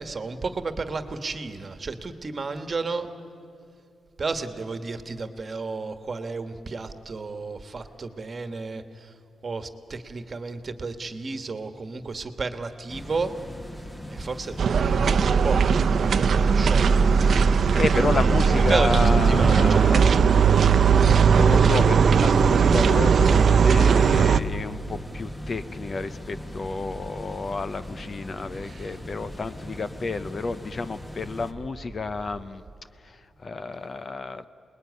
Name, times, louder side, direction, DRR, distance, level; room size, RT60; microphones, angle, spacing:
voice 1, 0.0-3.1 4.2-9.1 9.4-13.3 14.1-14.6 14.8-17.5 17.9-20.2 28.5-29.0, right 4 dB, 35° right, 8 dB, 1.5 m, -32 dB
sound 1, 12.9-31.5, left 1 dB, 10° left, 1.5 m, -39 dB
sound 2, 14.6-24.4, right 6 dB, 60° right, 0.7 m, -18 dB
voice 2, 17.1-32.6 33.0-34.5, left 3 dB, 35° left, 13 dB, 0.7 m, -31 dB
27.0 x 20.5 x 9.6 m, 2.5 s
wide cardioid pair, 125°, 0 cm